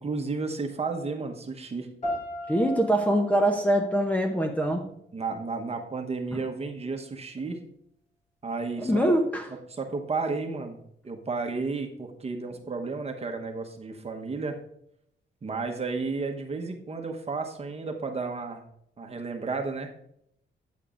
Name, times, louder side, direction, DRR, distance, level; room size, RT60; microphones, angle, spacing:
voice 1, 0.0-1.9 5.1-7.6 8.4-9.0 9.7-10.8 11.0-14.6 15.4-18.6 19.0-19.9, right 4 dB, 30° right, 4 dB, 1.0 m, -32 dB
sound 1, 2.0-5.0, left 1 dB, 40° left, 3.3 m, -37 dB
voice 2, 2.5-4.9 6.3-6.4 8.8-9.5, right 1 dB, 5° left, 0 dB, 0.7 m, -24 dB
8.7 x 8.3 x 2.5 m, 0.72 s
cardioid pair, 130°, 20 cm